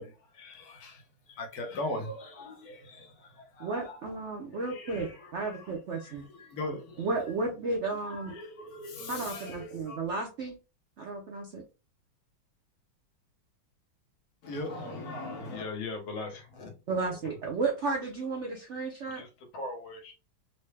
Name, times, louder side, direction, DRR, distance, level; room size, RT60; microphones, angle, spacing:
voice 1, 0.0-4.0 4.5-7.1 8.1-10.0 14.4-15.7, left 1 dB, 60° left, 1.2 m, -40 dB
voice 2, 3.6-6.3 7.0-8.3 9.1-10.6 11.0-11.6 16.9-19.2, right 3 dB, 80° right, 0.6 m, -33 dB
voice 3, 15.5-16.7 17.1-17.2 19.1-20.1, left 3 dB, 80° left, 1.8 m, -39 dB
4.2 x 2.1 x 3.2 m
omnidirectional pair, 2.1 m